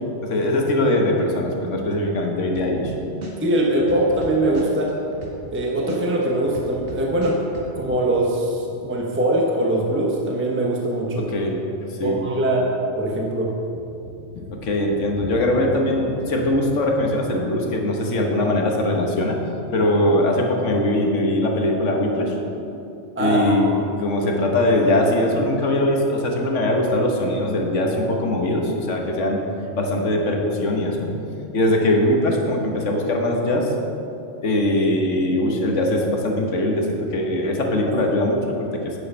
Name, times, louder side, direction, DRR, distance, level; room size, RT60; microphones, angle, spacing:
voice 1, 0.2-2.9 11.2-11.6 12.0-12.2 14.3-19.4 19.7-22.3 23.2-29.4 29.7-31.1 31.5-33.7 34.4-38.9, left 1 dB, 75° left, 1 dB, 1.5 m, -21 dB
sound 1, 2.5-2.9 3.2-5.6 5.9-7.7, equal, 50° right, 1.6 m, -36 dB
voice 2, 3.4-4.9 5.5-7.4 7.8-11.2 12.0-12.6 13.0-13.6 23.2-23.8, right 1 dB, 10° right, -2 dB, 0.9 m, -22 dB
9.5 x 6.6 x 5.5 m, 2.8 s
omnidirectional pair, 1.3 m